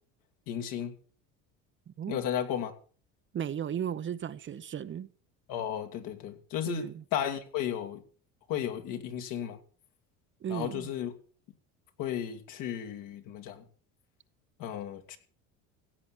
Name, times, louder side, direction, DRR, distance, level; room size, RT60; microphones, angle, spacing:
voice 1, 0.5-0.9 2.1-2.7 5.5-8.0 8.5-9.6 10.5-11.1 12.0-13.6 14.6-15.2, left 10 dB, 65° left, 2.4 m, -34 dB
voice 2, 1.9-2.2 3.3-5.1 6.7-7.0 10.4-10.9, right 9 dB, 35° right, 0.8 m, -35 dB
16.0 x 8.5 x 6.0 m
supercardioid pair, 95°, 35 cm